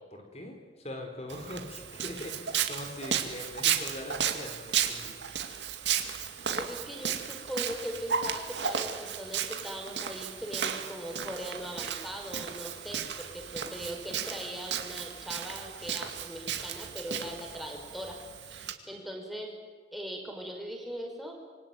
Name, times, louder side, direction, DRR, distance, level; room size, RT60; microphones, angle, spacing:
voice 1, 0.1-5.1, left 1 dB, 35° left, 4 dB, 4.9 m, -41 dB
Walk footsteps, 1.3-18.7, right 8 dB, 90° right, 2.4 m, -34 dB
voice 2, 6.6-18.2 18.5-19.6 19.9-21.3, equal, ahead, 1 dB, 5.3 m, -40 dB
26.5 x 24.0 x 9.3 m, 1.5 s
head